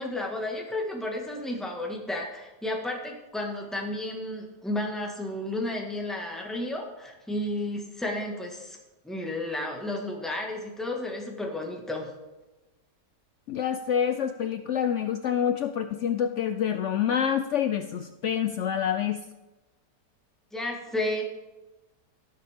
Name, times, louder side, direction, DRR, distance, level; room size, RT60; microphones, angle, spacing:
voice 1, 0.0-8.8 9.0-12.1 20.5-21.2, left 1 dB, ahead, 0 dB, 1.6 m, -32 dB
voice 2, 13.5-19.2, left 8 dB, 80° left, 9 dB, 0.6 m, -27 dB
17.5 x 6.7 x 3.6 m, 1.1 s
omnidirectional pair, 1.8 m